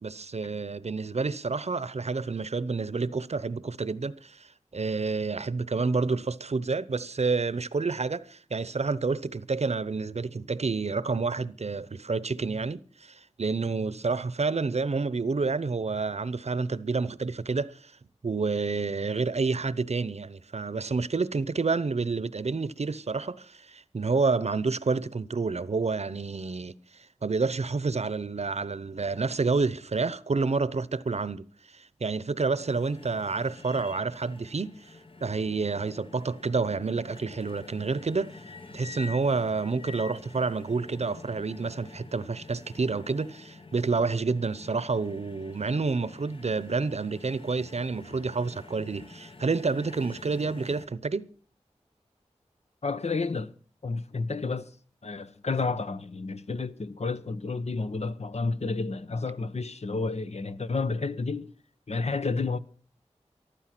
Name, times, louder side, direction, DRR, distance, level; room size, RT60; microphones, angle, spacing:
voice 1, 0.0-17.9 18.2-51.3, right 4 dB, 65° right, 0.8 m, -29 dB
sound 1, 32.6-50.9, left 3 dB, 50° left, 1.3 m, -48 dB
voice 2, 52.8-53.5 53.8-54.7 55.0-61.5 61.9-62.6, left 3 dB, 65° left, 1.0 m, -30 dB
14.0 x 12.0 x 6.0 m
wide cardioid pair, 45°, 12 cm